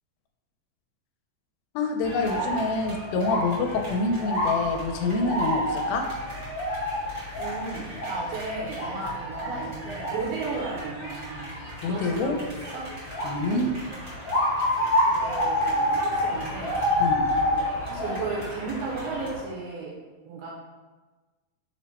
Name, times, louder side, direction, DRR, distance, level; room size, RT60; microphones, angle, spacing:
voice 1, 1.8-6.1 11.8-12.4 13.2-13.7 17.0-17.3, left 3 dB, 85° left, 4 dB, 2.4 m, -26 dB
sound 1, 2.0-19.4, left 1 dB, 60° left, 2.1 m, -29 dB
sound 2, 2.0-19.3, right 1 dB, 60° right, 0.9 m, -41 dB
voice 2, 7.4-11.6 11.9-12.9 13.5-13.8 15.1-16.8 17.3-20.0 20.3-20.5, right 3 dB, 80° right, -2 dB, 2.3 m, -34 dB
6.2 x 2.2 x 4.0 m, 1.3 s
omnidirectional pair, 4.2 m